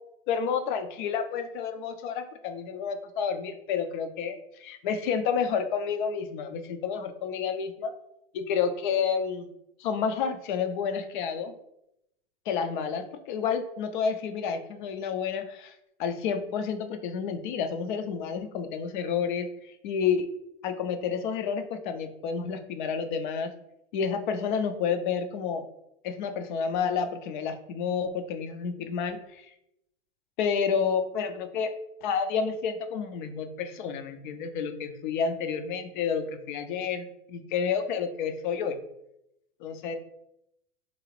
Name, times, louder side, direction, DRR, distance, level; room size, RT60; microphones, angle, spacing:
voice 1, 0.3-7.9 8.3-9.5 9.8-11.5 12.5-15.7 16.0-19.5 19.8-20.3 20.6-23.5 23.9-25.7 26.0-29.5 30.4-31.7 32.0-38.8 39.6-40.0, left 6 dB, 55° left, 8 dB, 0.5 m, -30 dB
3.8 x 2.3 x 3.2 m, 0.82 s
hypercardioid pair, 95°, 30 cm